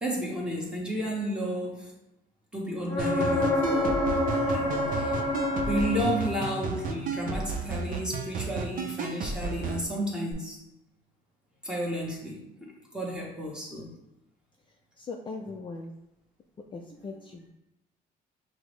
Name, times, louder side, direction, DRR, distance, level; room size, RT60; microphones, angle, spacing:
voice 1, 0.0-1.9 2.5-4.1 4.5-5.2 5.7-10.6 11.6-13.9 16.9-17.1, equal, 5° right, -3 dB, 1.1 m, -32 dB
sound 1, 2.9-6.6 10.3-10.4, left 2 dB, 15° left, 1.5 m, -27 dB
sound 2, 3.0-9.8, right 5 dB, 55° right, 0.6 m, -33 dB
voice 2, 15.0-15.9 16.7-17.5, left 3 dB, 30° left, 1 dB, 0.4 m, -39 dB
5.9 x 2.0 x 3.2 m, 0.88 s
cardioid pair, 110°, 17 cm